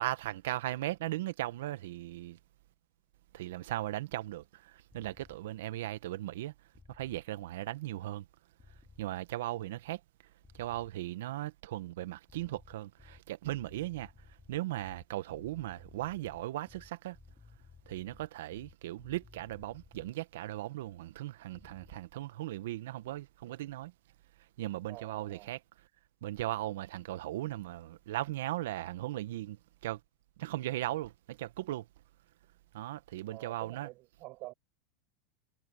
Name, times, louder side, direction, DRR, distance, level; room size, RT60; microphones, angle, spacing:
voice 1, 0.0-2.4 3.3-6.5 6.9-8.3 9.0-10.0 10.5-17.2 17.9-23.9 24.6-25.6 26.2-30.0 30.4-31.9 32.7-33.9, right 15 dB, 75° right, 1.5 m, -38 dB
sound 1, 4.9-5.4 6.7-7.2 8.6-9.1 10.4-10.9 12.3-20.2 21.5-22.0, left 4 dB, 15° left, 6.9 m, -58 dB
voice 2, 24.9-25.5 33.3-34.5, right 21 dB, 50° right, 6.2 m, -48 dB
hypercardioid pair, 105°, 0 cm